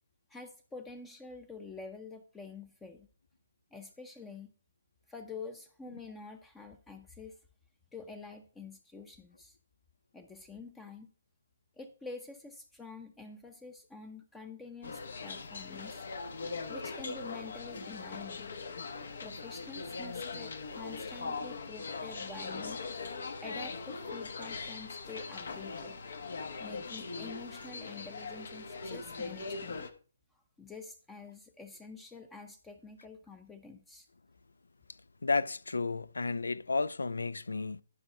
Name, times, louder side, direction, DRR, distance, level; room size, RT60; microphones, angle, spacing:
voice 1, 0.3-3.1 3.7-4.5 5.1-7.4 7.9-9.6 10.1-11.1 11.8-16.0 16.7-18.5 19.2-22.8 23.4-26.0 26.6-29.9 30.6-34.1, left 4 dB, 10° left, 0.6 m, -47 dB
sound 1, 14.8-29.9, left 4 dB, 65° left, 1.2 m, -40 dB
voice 2, 35.2-37.8, left 3 dB, 85° left, 0.4 m, -32 dB
11.0 x 4.8 x 4.5 m
hypercardioid pair, 150°, 0 cm